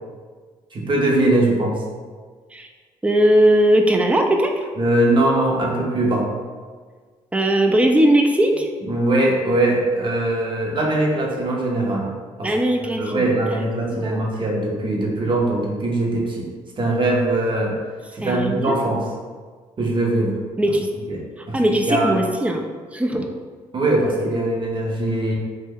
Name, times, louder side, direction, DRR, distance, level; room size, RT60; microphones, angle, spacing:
voice 1, 0.7-1.8 4.8-6.3 8.8-12.1 12.4-12.5 13.0-16.5 16.8-17.7 18.1-19.0 19.8-20.4 21.1-21.2 21.5-21.6 21.9-22.2 23.1-23.2 23.7-25.3, right 1 dB, 40° right, -2 dB, 0.7 m, -21 dB
voice 2, 3.0-4.6 7.3-8.7 12.4-13.3 13.9-14.2 18.2-18.8 20.6-20.9 21.5-22.7 22.9-23.2, right 1 dB, 10° right, 3 dB, 0.4 m, -19 dB
2.5 x 2.1 x 3.5 m, 1.5 s
supercardioid pair, 65°, 13 cm